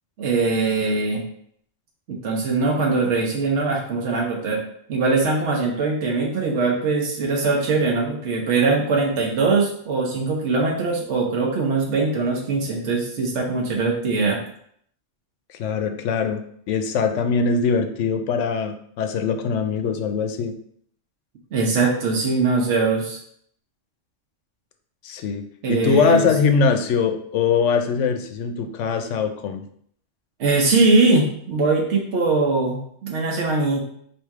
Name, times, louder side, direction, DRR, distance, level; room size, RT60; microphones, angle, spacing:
voice 1, 0.2-1.2 2.1-4.6 4.9-14.4 21.5-23.2 25.6-26.3 30.4-33.8, right 3 dB, 75° right, -1 dB, 1.0 m, -21 dB
voice 2, 15.6-20.5 25.0-29.6, left 5 dB, 85° left, 7 dB, 0.9 m, -22 dB
3.4 x 2.7 x 4.6 m, 0.64 s
omnidirectional pair, 1.2 m